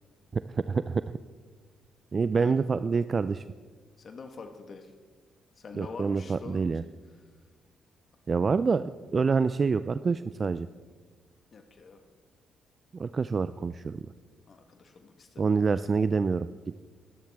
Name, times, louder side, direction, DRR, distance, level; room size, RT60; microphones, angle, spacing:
voice 1, 0.3-1.0 2.1-3.4 5.7-6.8 8.3-10.7 12.9-14.0 15.4-16.5, right 5 dB, 40° right, 13 dB, 0.4 m, -27 dB
voice 2, 2.3-2.6 4.0-4.9 5.6-6.8 11.5-12.0 14.5-15.7, left 4 dB, 50° left, 5 dB, 1.3 m, -45 dB
23.0 x 10.5 x 3.5 m, 1.5 s
cardioid pair, 75°, 0 cm